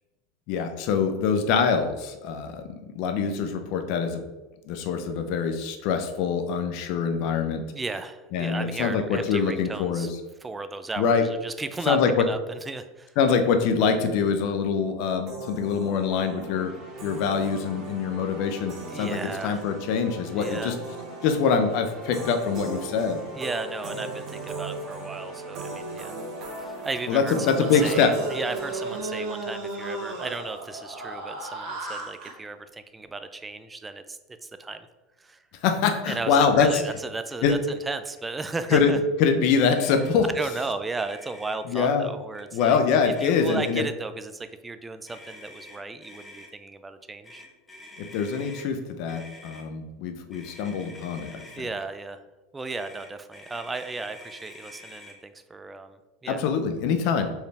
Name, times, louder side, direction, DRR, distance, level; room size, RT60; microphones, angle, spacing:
voice 1, 0.5-4.3 4.7-7.6 8.3-10.2 11.0-11.3 11.9-12.3 13.2-20.8 21.2-23.2 27.1-28.2 35.6-36.8 37.4-37.6 38.7-40.3 41.7-42.1 42.5-43.8 48.0-51.5 56.3-57.3, left 6 dB, 60° left, 7 dB, 0.6 m, -24 dB
voice 2, 7.7-10.1 10.4-13.1 18.9-19.7 20.3-20.8 23.3-26.1 26.6-34.9 35.2-35.4 36.1-39.0 40.3-47.4 51.6-52.2 52.5-56.5, right 3 dB, 15° right, 9 dB, 0.3 m, -35 dB
sound 1, 15.3-29.0, right 2 dB, 45° right, 1.4 m, -38 dB
sound 2, 27.6-32.3, right 2 dB, 70° right, 1.4 m, -34 dB
Motor vehicle (road), 39.8-40.1 40.5-40.6 40.9-41.6 42.3-42.7 43.0-43.9 45.1-46.5 47.2-48.7 49.1-49.6 50.3-51.6 52.7-55.2, left 1 dB, 15° left, 0.8 m, -47 dB
4.6 x 3.3 x 3.4 m, 1.1 s
supercardioid pair, 120°, 0 cm